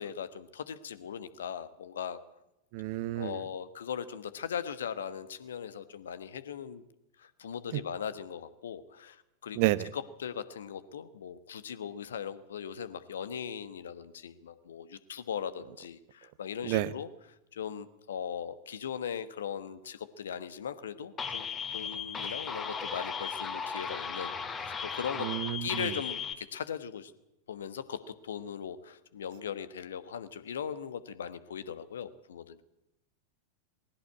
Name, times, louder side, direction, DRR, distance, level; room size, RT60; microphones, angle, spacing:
voice 1, 0.0-2.2 3.1-6.8 7.2-17.1 17.5-25.3 25.6-27.1 27.5-32.6, left 8 dB, 65° left, 14 dB, 1.2 m, -39 dB
voice 2, 2.7-3.4 9.6-9.8 16.7-16.9 25.2-25.7, right 17 dB, 45° right, 18 dB, 0.8 m, -29 dB
sound 1, 21.2-26.3, left 6 dB, 20° left, 2.1 m, -36 dB
19.5 x 16.0 x 8.4 m, 0.90 s
figure-of-eight pair, 90°, 0 cm